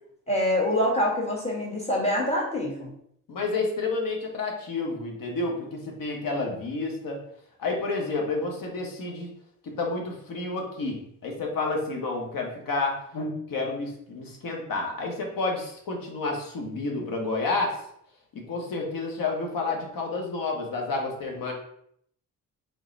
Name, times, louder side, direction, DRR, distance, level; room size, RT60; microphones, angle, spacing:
voice 1, 0.3-2.9, left 1 dB, 20° left, -3 dB, 1.7 m, -25 dB
voice 2, 3.3-7.2 7.6-9.3 9.6-17.8 18.3-21.5, left 3 dB, 70° left, 1 dB, 1.2 m, -30 dB
3.8 x 3.1 x 3.9 m, 0.69 s
cardioid pair, 85°, 35 cm